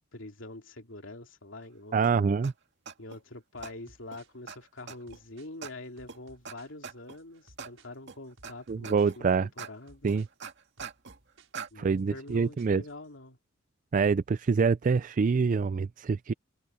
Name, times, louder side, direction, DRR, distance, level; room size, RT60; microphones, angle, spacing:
voice 1, 0.1-2.3 3.0-10.1 11.7-13.4, left 2 dB, 65° left, 3.2 m, -45 dB
voice 2, 1.9-2.5 8.7-9.5 10.0-10.3 11.8-12.8 13.9-16.3, right 5 dB, 40° right, 0.3 m, -26 dB
sound 1, 2.0-2.1 2.4-2.5 2.9-3.2 3.6-3.7 4.1-4.2 4.5-4.6 4.9-5.2 5.6-5.7 6.1-6.2 6.5-6.6 6.8-7.2 7.6-7.7 8.1-8.5 8.8-9.2 9.6-9.7 10.1-11.2 11.5-11.7, right 6 dB, 60° right, 2.3 m, -41 dB
sound 2, 3.6-13.1, right 2 dB, 80° right, 5.9 m, -61 dB
head